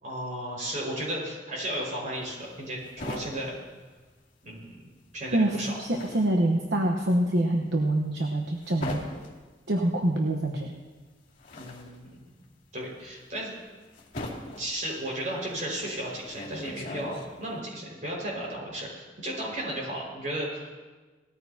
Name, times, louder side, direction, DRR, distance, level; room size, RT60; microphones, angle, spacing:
voice 1, 0.0-3.5 4.4-4.9 5.1-5.7 11.6-12.2 12.7-13.6 14.6-20.8, right 1 dB, 45° right, -3 dB, 5.2 m, -34 dB
sound 1, 2.2-4.7 4.9-17.6, left 1 dB, 45° left, 2.5 m, -41 dB
voice 2, 5.3-9.0 9.7-10.7, right 1 dB, 65° right, 1 dB, 1.1 m, -25 dB
19.0 x 14.0 x 2.8 m, 1.3 s
head